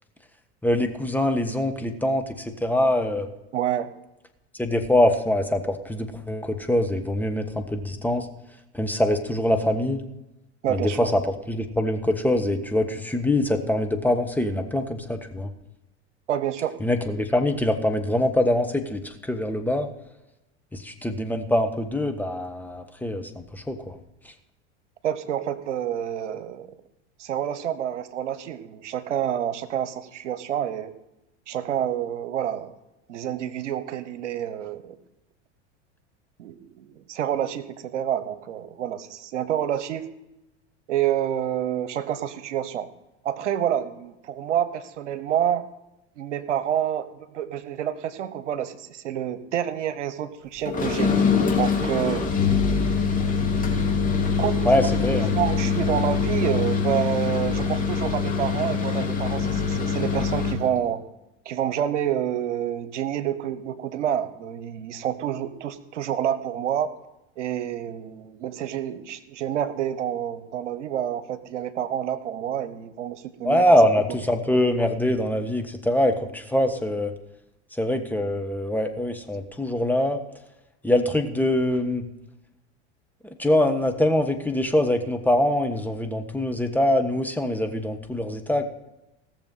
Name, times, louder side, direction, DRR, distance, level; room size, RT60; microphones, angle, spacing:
voice 1, 0.6-3.3 4.6-8.3 8.7-10.0 10.7-11.2 11.5-15.5 16.8-19.9 20.7-24.0 54.6-55.3 73.4-77.1 77.8-80.2 80.8-82.1 83.4-88.7, left 1 dB, 5° left, 5 dB, 1.4 m, -23 dB
voice 2, 3.5-3.9 10.6-11.1 16.3-16.8 25.0-26.8 27.2-30.9 31.5-32.7 33.1-35.0 36.4-40.1 40.9-42.9 43.2-45.6 46.2-51.1 51.6-52.2 54.4-61.0 61.4-66.9 67.4-73.6, right 10 dB, 80° right, 13 dB, 1.0 m, -28 dB
sound 1, 50.6-60.7, left 5 dB, 25° left, 3.0 m, -24 dB
18.0 x 7.0 x 5.6 m, 0.91 s
hypercardioid pair, 90°, 35 cm